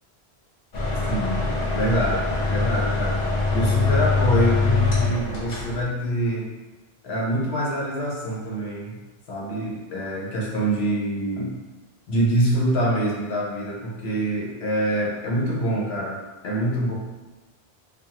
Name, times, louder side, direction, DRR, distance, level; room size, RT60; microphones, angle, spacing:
sound 1, 0.7-5.8, left 3 dB, 50° left, 0.6 m, -23 dB
voice 1, 1.0-1.5 1.7-3.2 3.5-6.5 7.0-9.0 9.3-11.5 12.1-16.9, right 1 dB, 80° left, -4 dB, 1.0 m, -25 dB
2.6 x 2.4 x 2.8 m, 1.2 s
omnidirectional pair, 1.1 m